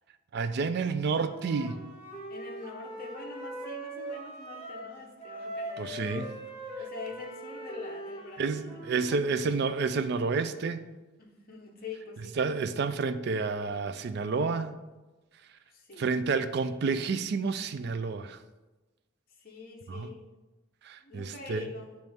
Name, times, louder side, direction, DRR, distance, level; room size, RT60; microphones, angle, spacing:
voice 1, 0.3-1.8 5.8-6.2 8.4-10.8 12.4-14.7 16.0-18.4 19.9-20.1 20.8-21.7, right 4 dB, 50° right, 0.3 m, -30 dB
Wind instrument woodwind instrument, 1.1-4.9 5.2-9.2, right 1 dB, 25° left, 1.3 m, -41 dB
voice 2, 2.3-6.3 6.8-8.8 9.1-9.4 11.2-12.4 15.7-16.1 19.4-20.2 21.0-22.0, left 3 dB, 45° left, 0.8 m, -44 dB
9.0 x 3.1 x 3.4 m
head